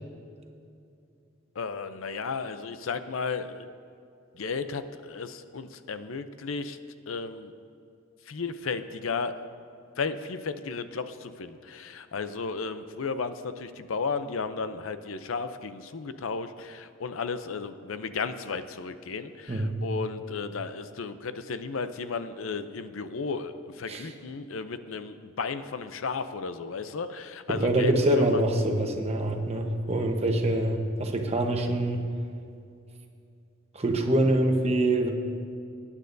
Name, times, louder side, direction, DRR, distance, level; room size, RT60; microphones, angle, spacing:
voice 1, 1.5-3.7 4.3-6.8 7.1-7.5 8.2-9.4 10.0-28.4, left 4 dB, 90° left, 11 dB, 0.6 m, -34 dB
voice 2, 27.5-32.0 33.7-35.1, right 1 dB, 30° right, 3 dB, 1.0 m, -25 dB
21.5 x 9.9 x 2.7 m, 2.4 s
head